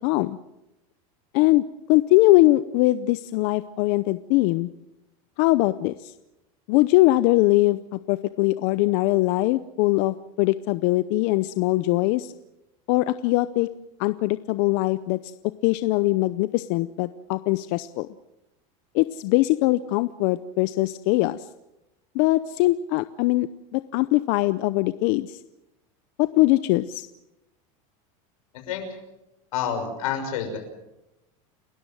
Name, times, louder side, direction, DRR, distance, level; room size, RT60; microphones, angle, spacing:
voice 1, 0.0-0.4 1.3-4.7 5.4-6.1 6.7-12.3 12.9-13.7 14.0-15.3 15.6-18.1 18.9-21.5 22.1-23.5 23.7-25.4 26.2-27.1, left 18 dB, 55° left, 14 dB, 0.7 m, -21 dB
voice 2, 29.5-30.6, left 8 dB, 90° left, 5 dB, 6.3 m, -28 dB
30.0 x 13.5 x 7.7 m, 0.93 s
supercardioid pair, 150°, 17 cm